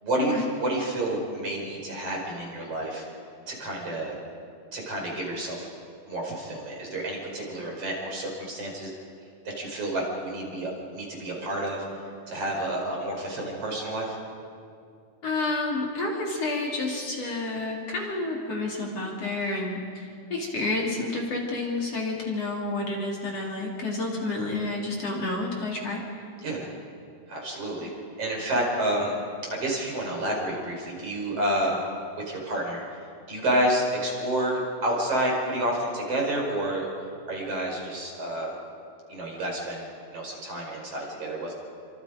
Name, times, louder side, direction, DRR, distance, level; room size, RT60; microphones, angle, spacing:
voice 1, 0.0-3.0 3.5-4.1 4.7-5.7 6.1-8.9 9.6-11.8 12.3-14.2 26.4-26.7 27.3-27.9 28.2-29.2 29.5-31.8 32.2-32.8 33.3-36.9 37.3-38.5 39.1-41.5, right 1 dB, 45° right, -1 dB, 5.9 m, -29 dB
voice 2, 15.2-26.3, left 2 dB, 45° left, -2 dB, 4.2 m, -30 dB
29.5 x 26.0 x 5.2 m, 2.3 s
omnidirectional pair, 3.9 m